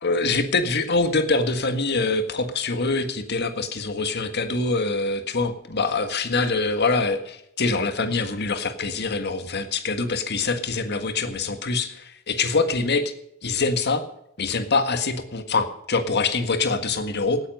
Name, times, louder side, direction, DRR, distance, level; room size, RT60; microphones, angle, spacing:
voice 1, 0.0-13.0 13.4-14.0 14.4-17.4, left 3 dB, 55° left, 9 dB, 1.7 m, -24 dB
17.5 x 9.7 x 5.4 m, 0.77 s
head